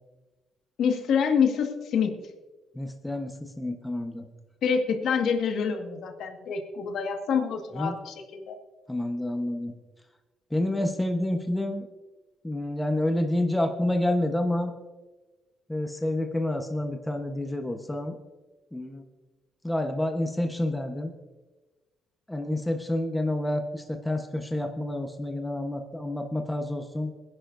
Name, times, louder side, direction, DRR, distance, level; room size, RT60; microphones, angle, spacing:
voice 1, 0.8-2.2 4.6-8.6, left 6 dB, 75° left, 4 dB, 1.8 m, -26 dB
voice 2, 2.7-4.2 7.7-8.0 8.9-9.7 10.5-11.9 12.4-14.7 15.7-18.2 18.7-19.0 19.6-21.1 22.3-27.1, left 1 dB, 10° left, 4 dB, 1.1 m, -28 dB
21.5 x 10.5 x 2.7 m, 1.2 s
cardioid pair, 90°, 0 cm